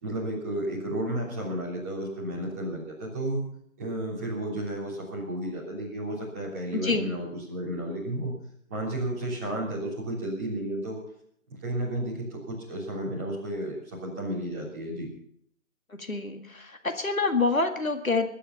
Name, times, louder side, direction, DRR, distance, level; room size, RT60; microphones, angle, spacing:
voice 1, 0.0-3.4 3.8-8.3 8.7-11.0 11.6-15.1, right 1 dB, 10° right, -7 dB, 3.3 m, -32 dB
voice 2, 6.7-7.1 15.9-18.3, left 3 dB, 70° left, 6 dB, 2.0 m, -27 dB
21.5 x 10.5 x 5.7 m, 0.69 s
figure-of-eight pair, 160°, 43 cm